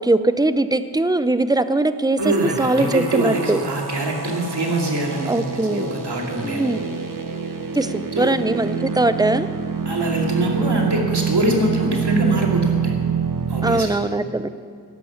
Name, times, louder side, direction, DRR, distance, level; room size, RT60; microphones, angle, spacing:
voice 1, 0.0-3.6 5.3-5.8 6.4-6.9 7.8-9.5 13.6-14.5, right 2 dB, 10° right, 12 dB, 0.6 m, -21 dB
sound 1, 2.2-13.8, right 6 dB, 50° right, 1.3 m, -26 dB
voice 2, 2.2-6.8 8.1-8.3 9.9-12.9 13.5-14.0, right 1 dB, 75° right, 0 dB, 2.6 m, -23 dB
12.5 x 11.5 x 7.2 m, 2.2 s
wide cardioid pair, 75°, 40 cm